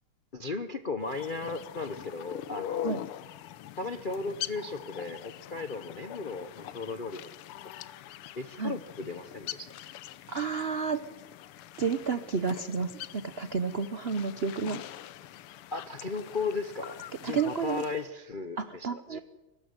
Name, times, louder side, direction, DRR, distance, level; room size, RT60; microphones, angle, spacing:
voice 1, 0.3-3.0 3.8-7.2 8.3-9.8 15.7-19.2, left 4 dB, 60° left, 9 dB, 0.5 m, -36 dB
sound 1, 1.0-18.1, left 12 dB, 90° left, 1.7 m, -43 dB
voice 2, 10.3-11.0 11.8-14.8 17.2-17.8 18.6-19.2, right 5 dB, 85° right, 12 dB, 0.5 m, -31 dB
22.0 x 12.5 x 9.6 m, 1.2 s
omnidirectional pair, 2.4 m